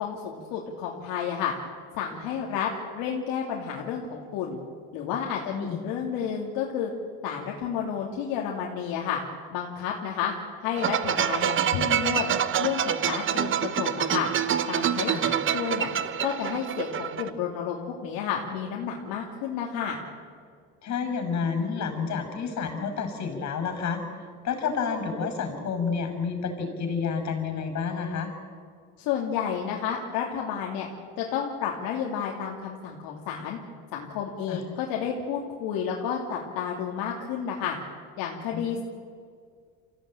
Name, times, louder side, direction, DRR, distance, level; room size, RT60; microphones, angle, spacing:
voice 1, 0.0-1.5 2.0-4.6 4.9-6.9 7.2-9.2 9.5-10.3 10.6-12.3 12.6-14.3 14.7-15.9 16.2-20.0 29.0-30.9 31.2-33.6 33.9-37.8 38.2-38.8, left 8 dB, 65° left, -1 dB, 2.8 m, -31 dB
voice 2, 5.5-5.8 15.1-15.3 20.8-24.0 24.4-28.3 34.5-34.6 38.5-38.8, left 5 dB, 45° left, 6 dB, 6.1 m, -30 dB
sound 1, 10.8-17.3, right 9 dB, 30° right, 1.0 m, -26 dB
25.0 x 16.0 x 9.0 m, 2.1 s
supercardioid pair, 115°, 37 cm